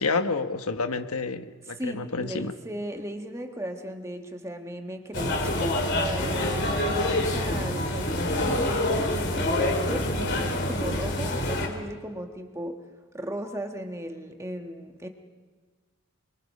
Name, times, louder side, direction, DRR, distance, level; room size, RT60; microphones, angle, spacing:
voice 1, 0.0-2.5, left 4 dB, 75° left, 8 dB, 1.3 m, -29 dB
voice 2, 1.8-12.8 13.1-15.1, equal, 15° right, 5 dB, 1.4 m, -36 dB
sound 1, 5.1-11.7, left 1 dB, 50° left, 3.5 m, -26 dB
27.0 x 23.0 x 5.5 m, 1.5 s
head